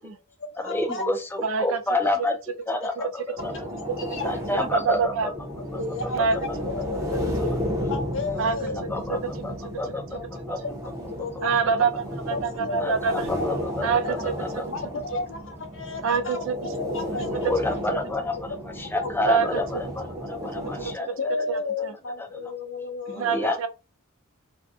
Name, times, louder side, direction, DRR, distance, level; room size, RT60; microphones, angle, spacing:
voice 1, 0.1-1.0 2.8-3.0 3.8-4.7 5.7-7.3 7.9-8.9 10.1-10.2 10.6-10.8 11.1-11.6 12.3-13.0 13.3-13.6 14.7-16.4 16.7-17.5 18.1-18.2 19.0-19.4 20.4-20.5 21.2-23.5, left 3 dB, 60° left, 0.8 m, -33 dB
voice 2, 0.6-2.3 2.7-3.5 4.2-5.3 8.3-8.4 8.9-10.2 10.5-10.6 12.8-14.6 17.4-18.4 18.8-21.2 23.1-23.7, left 2 dB, 10° left, 0.5 m, -29 dB
voice 3, 1.4-1.8 4.5-5.3 6.1-6.4 7.1-7.2 8.4-8.6 11.4-13.1 13.8-14.3 16.0-16.5 19.3-19.5 20.8-21.1 21.5-21.9 23.2-23.7, right 5 dB, 65° right, 0.4 m, -25 dB
sound 1, 3.4-20.9, left 1 dB, 15° right, 0.8 m, -33 dB
2.6 x 2.2 x 3.5 m
head